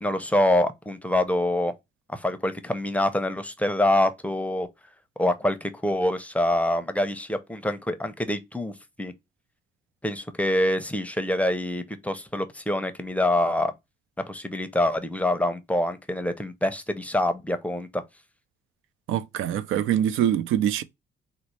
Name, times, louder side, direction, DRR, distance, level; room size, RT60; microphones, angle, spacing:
voice 1, 0.0-1.7 2.1-4.7 5.2-9.1 10.0-13.7 14.3-18.0, left 1 dB, 5° left, 0.5 m, -25 dB
voice 2, 19.1-20.8, right 10 dB, 85° right, 0.4 m, -24 dB
3.9 x 2.0 x 3.1 m
cardioid pair, 90°, 20 cm